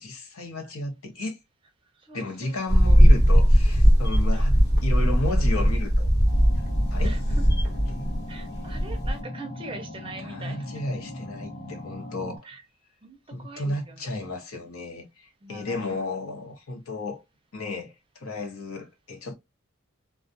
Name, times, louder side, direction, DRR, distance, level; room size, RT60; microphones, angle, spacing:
voice 1, 0.0-1.4 2.1-4.5 4.8-6.1 6.9-7.2 7.9-8.1 10.2-12.5 13.3-17.2 17.5-19.3, left 2 dB, 80° left, 0.9 m, -33 dB
voice 2, 1.9-2.6 4.3-4.5 7.0-7.4 8.3-10.8 12.4-12.6 13.0-14.0 15.4-16.1, right 2 dB, 25° right, 0.5 m, -42 dB
sound 1, 2.7-9.2, equal, 50° left, 1.1 m, -19 dB
sound 2, 6.2-12.4, left 1 dB, 30° left, 0.8 m, -39 dB
2.3 x 2.1 x 2.6 m
head